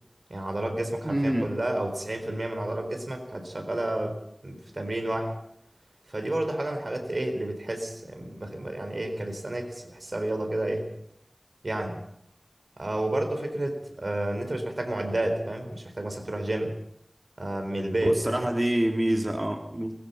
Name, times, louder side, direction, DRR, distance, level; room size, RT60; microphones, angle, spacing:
voice 1, 0.3-5.3 6.1-10.9 11.6-12.0 12.8-16.8 17.4-18.5, right 1 dB, 70° right, 6 dB, 4.2 m, -30 dB
voice 2, 1.0-1.5 18.0-19.9, right 1 dB, 40° right, 2 dB, 3.0 m, -26 dB
21.5 x 21.0 x 5.7 m, 0.73 s
wide cardioid pair, 40°, 0 cm